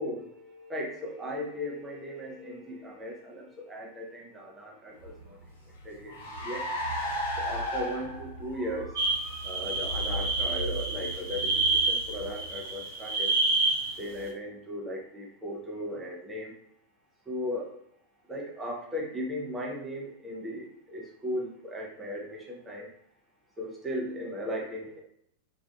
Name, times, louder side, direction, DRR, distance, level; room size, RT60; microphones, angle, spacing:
voice 1, 0.0-5.4 5.8-6.6 7.4-8.9 9.4-13.3 14.0-16.5 17.3-17.7 18.3-22.9 23.6-25.0, equal, 15° right, -2 dB, 0.7 m, -37 dB
Car, 5.0-12.8, equal, 60° left, 0.7 m, -36 dB
sound 1, 9.0-14.0, right 3 dB, 60° right, 0.7 m, -28 dB
2.5 x 2.4 x 2.2 m, 0.72 s
figure-of-eight pair, 90°, 0 cm